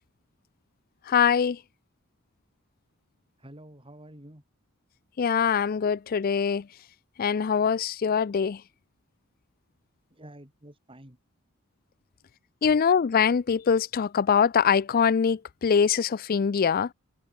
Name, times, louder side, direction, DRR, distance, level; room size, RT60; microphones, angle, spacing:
voice 1, 1.1-1.6 5.2-6.6 7.2-8.6 12.6-16.9, left 7 dB, 45° left, 0.4 m, -23 dB
voice 2, 3.4-4.4 10.1-11.2, right 1 dB, 25° right, 5.2 m, -48 dB
head